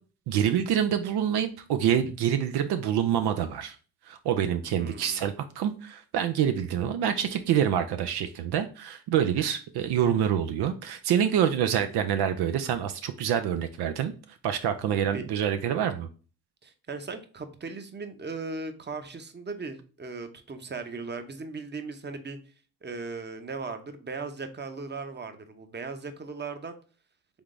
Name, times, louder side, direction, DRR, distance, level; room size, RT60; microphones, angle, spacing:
voice 1, 0.3-3.8 4.1-14.1 14.4-16.1, right 9 dB, 75° right, 8 dB, 0.5 m, -26 dB
voice 2, 4.8-5.2 15.1-15.2 16.6-22.4 22.8-26.8, right 4 dB, 25° right, 8 dB, 0.8 m, -38 dB
3.6 x 3.4 x 3.7 m, 0.37 s
supercardioid pair, 60°, 39 cm